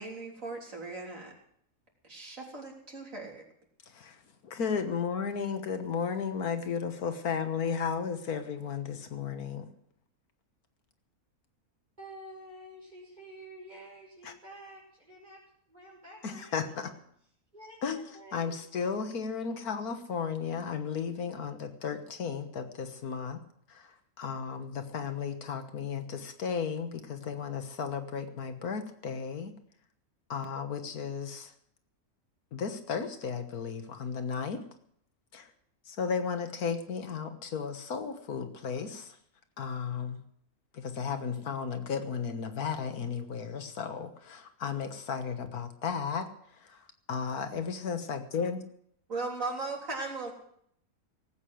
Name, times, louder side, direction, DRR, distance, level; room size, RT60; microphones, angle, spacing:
voice 1, 0.0-1.3 2.0-3.5 49.1-50.3, right 3 dB, 60° right, -1 dB, 4.0 m, -37 dB
voice 2, 4.4-9.7 14.2-14.3 16.2-16.9 17.8-18.0 18.3-23.4 23.7-29.5 30.3-31.5 32.5-34.6 35.3-35.5 35.9-39.2 39.6-40.2 40.7-46.3 46.6-46.8 47.1-48.6, left 6 dB, 85° left, 8 dB, 1.8 m, -34 dB
voice 3, 12.0-15.4 15.7-16.8 17.5-18.6, right 1 dB, 30° right, -4 dB, 5.1 m, -49 dB
18.0 x 8.6 x 7.7 m, 0.68 s
omnidirectional pair, 1.5 m